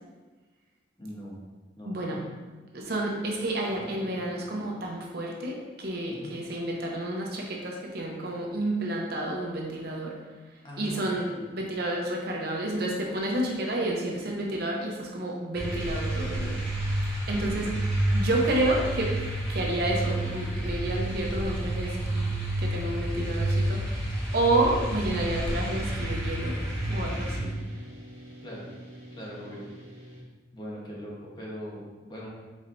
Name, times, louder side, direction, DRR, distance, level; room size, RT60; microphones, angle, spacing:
voice 1, 1.0-1.3 1.7-2.3 3.7-4.3 6.1-6.3 10.6-11.5 17.2-17.4 28.4-28.6 29.1-29.7 30.5-32.3, equal, 25° left, -5 dB, 1.1 m, -41 dB
voice 2, 1.9-2.2 2.7-10.1 10.8-16.8 17.3-17.7 18.1-19.1 19.5-24.1 24.3-26.6 26.9-27.5, right 1 dB, 55° right, -1 dB, 0.7 m, -30 dB
sound 1, 15.5-27.4, right 1 dB, 5° left, 1.4 m, -30 dB
sound 2, 24.2-30.2, equal, 35° right, 1.1 m, -47 dB
4.8 x 4.2 x 2.6 m, 1.3 s
head